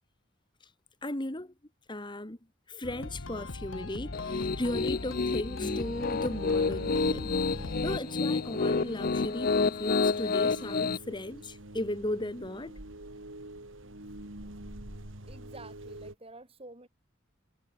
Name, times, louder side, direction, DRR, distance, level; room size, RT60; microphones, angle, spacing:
voice 1, 1.0-1.5 1.9-2.4 2.7-7.3 7.6-12.7, left 1 dB, 25° left, 1.8 m, -36 dB
sound 1, 2.8-8.0, left 2 dB, 80° left, 1.3 m, -40 dB
Piano, 4.1-11.0, left 4 dB, 45° left, 0.6 m, -29 dB
sound 2, 5.6-16.1, right 1 dB, 80° right, 3.7 m, -46 dB
voice 2, 15.3-16.9, right 2 dB, 30° right, 7.4 m, -49 dB
head